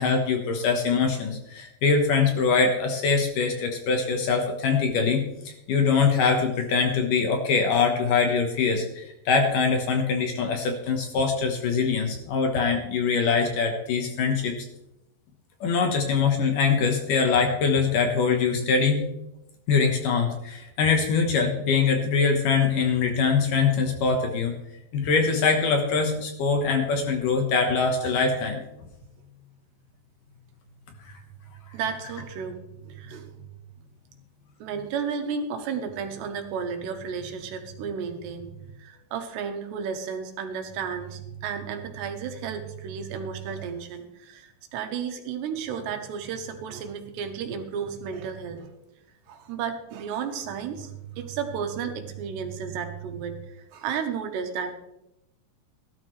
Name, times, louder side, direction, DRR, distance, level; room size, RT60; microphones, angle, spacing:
voice 1, 0.0-5.2 5.7-14.6 15.6-19.1 19.7-24.5 24.9-28.6, left 5 dB, 65° left, 4 dB, 2.4 m, -23 dB
voice 2, 31.7-33.5 34.6-48.7 49.3-54.8, right 6 dB, 85° right, 6 dB, 3.4 m, -33 dB
17.0 x 12.5 x 3.2 m, 0.86 s
omnidirectional pair, 4.8 m